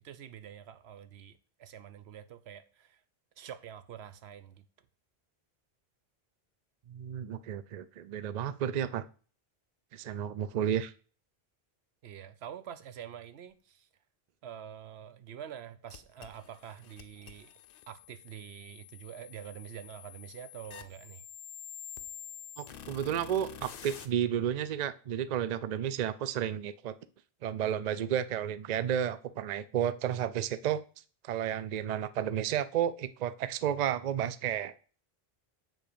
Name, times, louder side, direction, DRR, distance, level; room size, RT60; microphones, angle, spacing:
voice 1, 0.0-3.0 3.4-4.6 12.0-13.9 14.4-17.5 17.9-21.3, right 9 dB, 90° right, 1.0 m, -46 dB
voice 2, 6.9-9.0 9.9-10.9 22.6-26.9 27.4-30.8 31.2-34.7, right 9 dB, 55° right, 0.5 m, -32 dB
sound 1, 15.9-24.1, left 9 dB, 60° left, 0.8 m, -48 dB
7.6 x 3.9 x 6.7 m
omnidirectional pair, 1.1 m